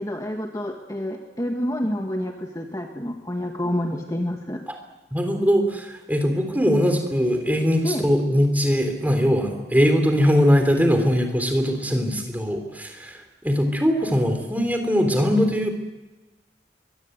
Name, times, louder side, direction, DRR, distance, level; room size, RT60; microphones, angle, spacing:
voice 1, 0.0-4.6 7.8-8.1, left 1 dB, 20° left, 2 dB, 1.6 m, -28 dB
voice 2, 5.1-15.7, equal, 10° right, 5 dB, 3.5 m, -21 dB
24.0 x 23.0 x 8.1 m, 1.1 s
head